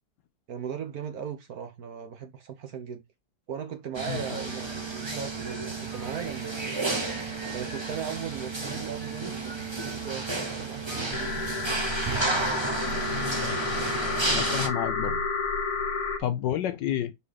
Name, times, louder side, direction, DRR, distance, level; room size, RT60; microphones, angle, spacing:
voice 1, 0.5-3.0 3.5-6.8 7.5-11.6, right 7 dB, 55° right, 1.2 m, -38 dB
sound 1, 3.9-14.7, right 3 dB, 20° right, 0.8 m, -32 dB
sound 2, 4.4-5.2 5.9-8.0 8.5-10.3 10.9-12.7, right 2 dB, 35° right, 1.8 m, -49 dB
sound 3, 11.1-16.2, left 4 dB, 55° left, 1.5 m, -30 dB
voice 2, 13.1-13.6 14.3-15.2 16.2-17.1, left 10 dB, 70° left, 1.2 m, -30 dB
4.9 x 4.2 x 5.0 m
omnidirectional pair, 2.2 m